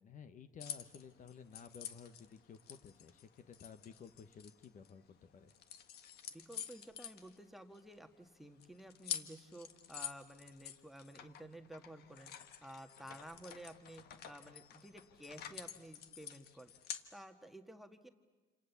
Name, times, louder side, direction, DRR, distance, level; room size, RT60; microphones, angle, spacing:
voice 1, 0.0-5.5, left 6 dB, 50° left, 11 dB, 1.3 m, -54 dB
sound 1, 0.6-5.1 5.5-7.9 8.3-8.4 8.6-17.1, left 9 dB, 70° left, 1.6 m, -48 dB
voice 2, 6.3-16.7 17.1-18.1, right 1 dB, ahead, 8 dB, 1.6 m, -53 dB
28.5 x 27.0 x 7.2 m, 1.2 s
cardioid pair, 110°, 17 cm